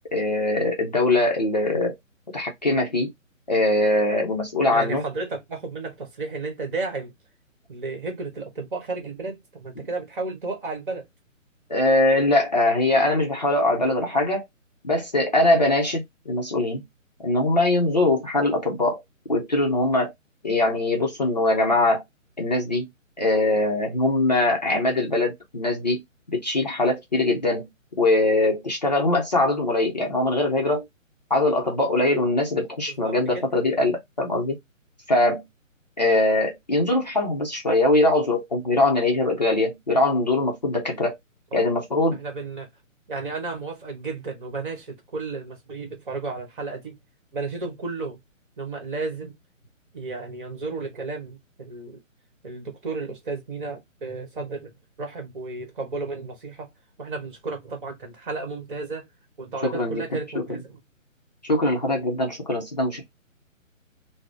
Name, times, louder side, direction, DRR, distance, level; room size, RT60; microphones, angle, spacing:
voice 1, 0.1-1.9 2.3-3.1 3.5-5.0 9.8-9.9 11.7-14.4 14.8-16.8 17.2-19.0 19.3-20.1 20.4-22.0 22.4-22.9 23.2-26.0 26.3-27.6 28.0-30.9 31.3-34.6 35.1-35.4 36.0-41.1 41.5-42.2 59.6-60.6 61.5-63.1, left 2 dB, 35° left, 0.5 m, -22 dB
voice 2, 4.7-7.1 7.7-11.0 32.9-33.4 33.7-33.8 41.9-42.7 43.1-46.9 47.3-48.2 48.6-49.3 49.9-52.0 52.4-54.7 55.0-56.7 57.0-59.0 59.4-60.8, right 3 dB, 40° right, 1.4 m, -33 dB
3.6 x 2.0 x 3.3 m
hypercardioid pair, 165°, 40 cm